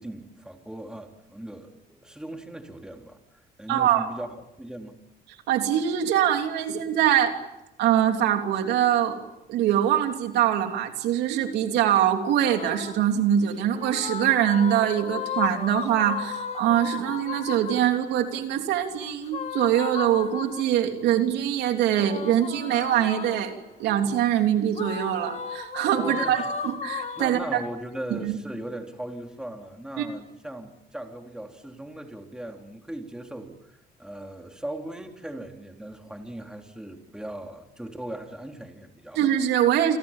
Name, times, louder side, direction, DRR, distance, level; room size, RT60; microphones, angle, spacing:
voice 1, 0.0-3.2 3.6-4.3 4.6-5.0 26.0-26.4 27.2-33.7 34.0-39.2, right 1 dB, 5° right, 3 dB, 3.7 m, -38 dB
voice 2, 3.7-4.1 5.5-7.4 7.8-9.2 9.5-27.6 28.1-28.4 30.0-30.1 39.1-40.0, right 10 dB, 80° right, 5 dB, 3.3 m, -23 dB
sound 1, 12.4-13.1 13.7-17.9 19.3-20.8 21.9-23.6 24.7-27.3, left 7 dB, 40° left, 2.6 m, -34 dB
29.0 x 25.0 x 7.5 m, 0.88 s
cardioid pair, 110°, 17 cm